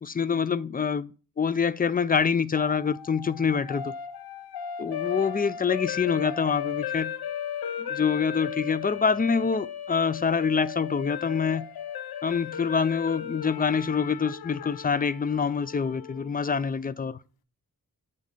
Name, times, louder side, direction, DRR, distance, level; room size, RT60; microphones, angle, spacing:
voice 1, 0.0-3.9 4.8-7.1 7.8-11.7 12.2-17.2, left 6 dB, 25° left, 0.3 m, -26 dB
sound 1, 2.6-16.7, left 9 dB, 85° left, 0.5 m, -36 dB
7.4 x 3.2 x 5.2 m
wide cardioid pair, 95°, 36 cm